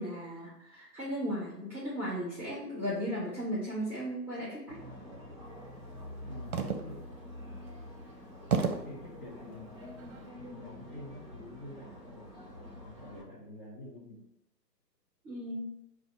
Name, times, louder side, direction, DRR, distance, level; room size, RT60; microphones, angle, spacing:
voice 1, 0.0-4.8 15.2-15.7, equal, 5° right, -8 dB, 0.9 m, -36 dB
sound 1, 4.7-13.2, left 1 dB, 20° right, 0.5 m, -47 dB
voice 2, 6.2-6.6 6.8-7.0 8.6-9.7 10.4-12.4 12.8-14.2, left 1 dB, 30° left, -4 dB, 0.9 m, -47 dB
sound 2, 6.5-7.1 7.7-7.8 8.5-9.0 9.8-10.2, right 6 dB, 60° right, 0.6 m, -31 dB
4.9 x 2.4 x 4.1 m, 0.83 s
figure-of-eight pair, 140°, 50 cm